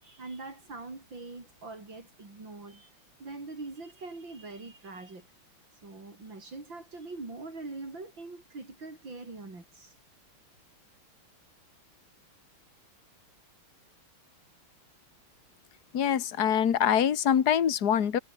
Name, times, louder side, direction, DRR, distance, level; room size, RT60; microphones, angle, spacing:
voice 1, 0.0-2.9 3.2-5.3 5.8-9.9, right 3 dB, 60° right, 6.6 m, -43 dB
voice 2, 15.9-18.2, left 9 dB, 50° left, 2.0 m, -24 dB
omnidirectional pair, 2.3 m